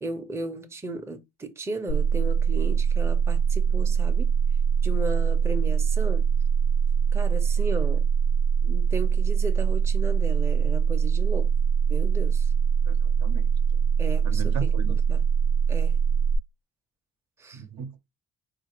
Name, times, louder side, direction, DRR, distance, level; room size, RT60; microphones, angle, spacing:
voice 1, 0.0-4.3 4.8-6.2 7.1-8.0 8.6-11.5 11.9-12.5 14.0-15.2 15.7-16.0 17.4-17.6, right 2 dB, 10° right, 0.5 m, -35 dB
sound 1, 1.9-16.4, right 6 dB, 80° left, 0.6 m, -23 dB
voice 2, 12.9-13.5 14.2-15.0 17.5-18.0, right 6 dB, 65° right, 0.7 m, -37 dB
4.0 x 2.4 x 2.9 m
cardioid pair, 90°, 30 cm